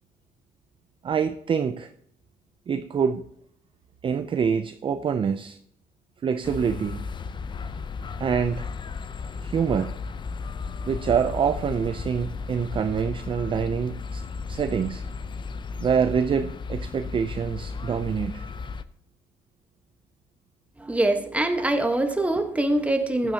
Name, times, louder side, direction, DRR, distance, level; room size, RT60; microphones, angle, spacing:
voice 1, 1.0-1.9 2.7-3.2 4.0-5.6 6.2-7.1 8.2-8.7 9.4-9.9 10.9-14.2 14.5-15.0 15.8-18.5, right 7 dB, 30° right, 0.4 m, -26 dB
sound 1, 6.4-18.8, left 5 dB, 30° left, 0.5 m, -34 dB
voice 2, 20.8-23.3, right 1 dB, 10° right, 1.2 m, -24 dB
14.5 x 9.1 x 2.8 m
cardioid pair, 110°, 17 cm